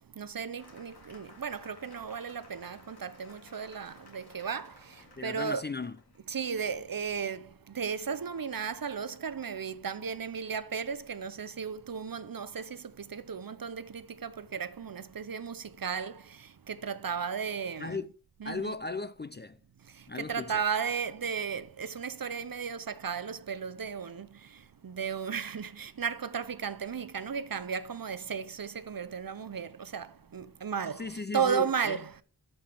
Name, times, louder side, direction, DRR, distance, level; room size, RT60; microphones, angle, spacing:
voice 1, 0.2-5.6 6.3-18.0 18.4-18.7 20.0-32.1, right 6 dB, 50° right, 0.7 m, -35 dB
Cheering / Applause, 0.6-6.3, left 3 dB, 60° left, 2.9 m, -56 dB
voice 2, 5.2-6.0 17.8-18.1 18.4-19.6 20.1-20.6 31.0-32.0, left 3 dB, 25° left, 0.4 m, -36 dB
13.5 x 5.5 x 3.5 m
wide cardioid pair, 80°, 43 cm